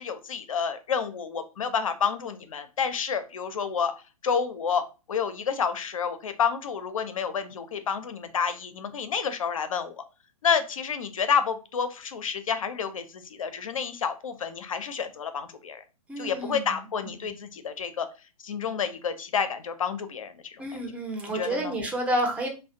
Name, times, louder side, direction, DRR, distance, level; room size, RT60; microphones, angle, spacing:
voice 1, 0.0-3.9 4.2-4.8 5.1-10.0 10.4-15.8 16.2-18.1 18.4-20.6 21.3-21.7, left 6 dB, 65° left, 10 dB, 0.5 m, -29 dB
voice 2, 16.1-16.8 17.2-17.3 20.6-22.5, right 1 dB, 5° right, 2 dB, 0.5 m, -30 dB
2.3 x 2.1 x 2.6 m, 0.31 s
figure-of-eight pair, 115°, 19 cm